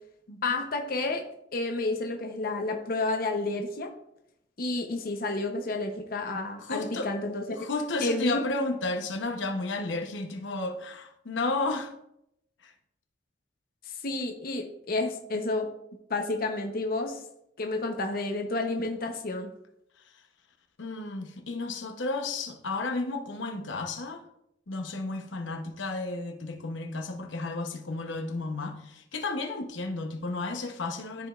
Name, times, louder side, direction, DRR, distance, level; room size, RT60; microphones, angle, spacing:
voice 1, 0.4-1.2 1.5-3.9 4.6-7.7 8.0-8.4 13.9-15.7 16.1-17.2 17.6-19.5, left 2 dB, 50° left, 3 dB, 0.8 m, -30 dB
voice 2, 6.6-7.1 7.6-11.9 12.6-12.7 20.8-24.2 24.7-31.3, left 3 dB, 85° left, 4 dB, 0.9 m, -32 dB
13.0 x 5.1 x 2.4 m, 0.79 s
head